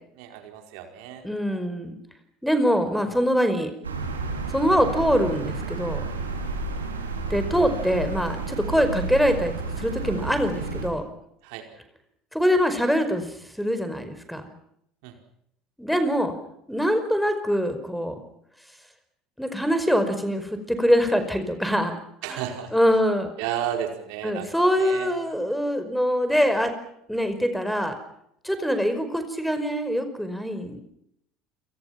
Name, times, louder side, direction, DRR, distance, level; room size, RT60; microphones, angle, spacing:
voice 1, 0.1-1.3 11.4-11.7 15.0-15.1 22.2-22.8 23.4-25.2, right 10 dB, 60° right, 4 dB, 4.8 m, -33 dB
voice 2, 1.2-2.0 2.4-3.7 4.5-6.0 7.3-11.0 12.3-14.4 15.8-16.3 16.7-18.2 19.4-21.9 22.3-22.4 22.7-23.3 24.2-26.7 27.1-27.9 28.4-30.8, equal, ahead, 9 dB, 5.1 m, -24 dB
sound 1, 3.8-10.9, right 3 dB, 80° right, 5.3 m, -31 dB
29.5 x 28.0 x 5.9 m, 0.77 s
figure-of-eight pair, 65°, 0 cm